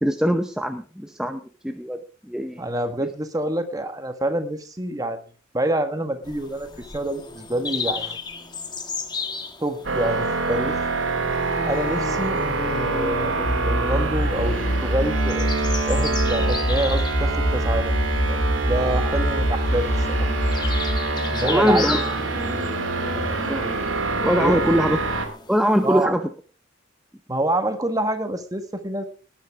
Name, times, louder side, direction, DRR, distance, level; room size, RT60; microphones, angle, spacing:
voice 1, 0.0-2.6 3.0-3.1 21.4-22.0 23.5-23.7 24.2-25.0 25.5-26.2, equal, 5° right, 6 dB, 0.7 m, -22 dB
voice 2, 2.6-5.2 5.5-6.7 6.9-8.2 9.6-10.8 11.6-15.5 15.9-17.9 18.2-20.3 21.3-22.0 24.4-24.6 25.8-26.1 27.3-29.0, right 1 dB, 20° right, 8 dB, 1.6 m, -27 dB
sound 1, 6.2-26.0, left 3 dB, 20° left, 1.4 m, -35 dB
sound 2, 9.8-25.3, right 3 dB, 80° right, 2.8 m, -26 dB
sound 3, 13.4-21.0, equal, 65° left, 2.0 m, -25 dB
19.0 x 10.5 x 3.7 m, 0.37 s
head